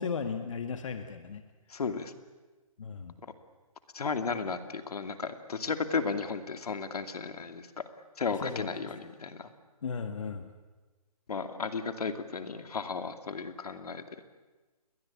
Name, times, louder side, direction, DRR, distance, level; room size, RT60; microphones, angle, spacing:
voice 1, 0.0-1.4 2.8-3.2 8.4-8.7 9.8-10.5, left 5 dB, 55° left, 7 dB, 1.9 m, -35 dB
voice 2, 1.7-2.1 3.9-7.8 8.2-9.5 11.3-14.0, left 5 dB, 80° left, 8 dB, 2.6 m, -34 dB
30.0 x 22.5 x 8.6 m, 1.2 s
hypercardioid pair, 175°, 19 cm